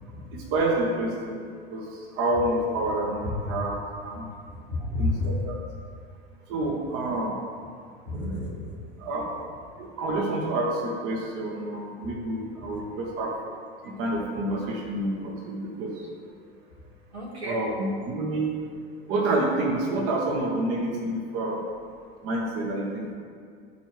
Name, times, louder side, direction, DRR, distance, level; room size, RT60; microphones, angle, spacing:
voice 1, 0.3-3.7 4.0-4.3 5.0-5.5 6.5-7.3 9.0-9.3 9.8-13.3 13.8-16.1 17.4-18.5 19.1-21.6 22.2-23.1, right 2 dB, 45° right, -1 dB, 1.1 m, -28 dB
voice 2, 4.5-5.3 8.1-8.8 12.0-12.1 12.7-12.8 17.1-17.6, left 2 dB, 90° right, -6 dB, 1.9 m, -31 dB
12.5 x 4.5 x 3.1 m, 2.2 s
figure-of-eight pair, 75°, 31 cm